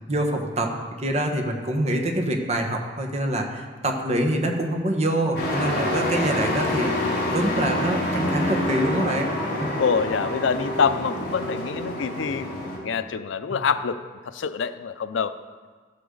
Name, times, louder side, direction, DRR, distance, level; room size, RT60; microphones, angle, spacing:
voice 1, 0.1-0.7 1.0-6.9 7.3-9.3 9.6-9.7 13.5-13.6, right 1 dB, 35° right, 2 dB, 1.2 m, -25 dB
Truck, 5.3-12.8, left 1 dB, 60° left, 3.5 m, -27 dB
voice 2, 9.8-12.5 12.8-14.0 14.3-15.4, left 6 dB, 90° left, 13 dB, 0.5 m, -25 dB
13.5 x 8.3 x 3.9 m, 1.5 s
head